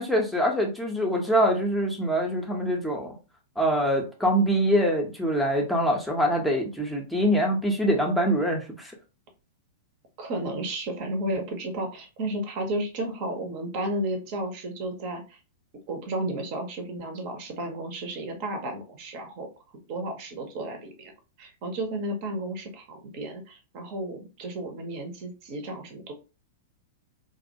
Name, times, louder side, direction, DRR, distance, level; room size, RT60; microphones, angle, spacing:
voice 1, 0.0-3.1 3.6-8.9, equal, 5° left, 0 dB, 0.5 m, -24 dB
voice 2, 10.2-15.4 15.9-19.5 19.9-21.1 21.4-26.1, right 1 dB, 45° right, 4 dB, 0.5 m, -33 dB
2.3 x 2.1 x 2.6 m, 0.31 s
figure-of-eight pair, 100°, 0 cm